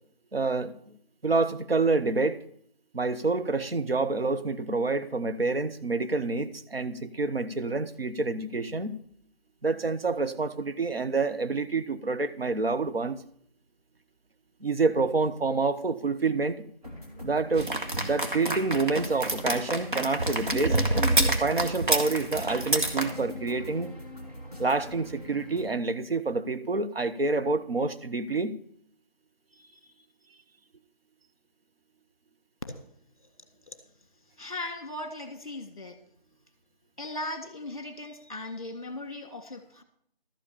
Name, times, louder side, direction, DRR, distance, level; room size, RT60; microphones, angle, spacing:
voice 1, 0.3-0.7 1.2-2.4 2.9-9.0 9.6-13.2 14.6-16.7 17.2-20.8 21.4-23.9 24.6-28.6, right 3 dB, 80° right, 1.0 m, -28 dB
sound 1, 16.8-25.7, left 1 dB, 40° right, 2.4 m, -43 dB
sound 2, 17.6-23.1, right 1 dB, 55° right, 1.7 m, -27 dB
voice 2, 34.4-36.0 37.0-39.8, left 2 dB, 35° left, 1.7 m, -38 dB
13.0 x 5.0 x 8.6 m
figure-of-eight pair, 175°, 30 cm